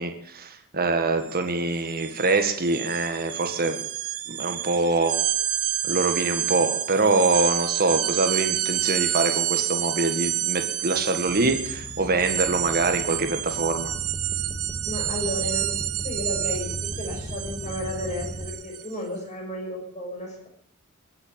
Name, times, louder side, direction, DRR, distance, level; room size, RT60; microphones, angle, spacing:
voice 1, 0.0-3.8 4.3-5.2 5.8-13.9, right 3 dB, 45° right, 6 dB, 1.7 m, -24 dB
sound 1, 1.2-1.4 1.7-18.9, right 13 dB, 80° right, 1.1 m, -29 dB
sound 2, 11.2-18.5, equal, 5° left, 2.5 m, -37 dB
voice 2, 14.8-15.7 16.0-20.5, left 1 dB, 35° left, 0 dB, 5.9 m, -33 dB
22.5 x 8.0 x 7.5 m, 0.68 s
head